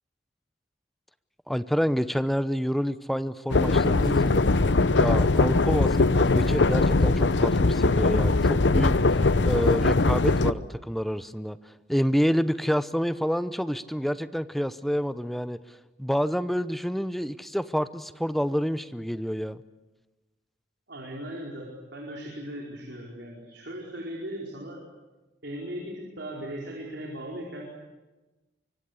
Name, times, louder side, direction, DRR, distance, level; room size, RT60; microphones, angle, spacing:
voice 1, 1.5-4.5 4.9-19.6, equal, ahead, 13 dB, 0.8 m, -28 dB
sound 1, 3.5-10.5, left 3 dB, 75° left, 0.8 m, -21 dB
voice 2, 20.9-24.8 25.4-27.8, equal, 70° right, -2 dB, 4.9 m, -38 dB
24.5 x 24.0 x 8.3 m, 1.1 s
head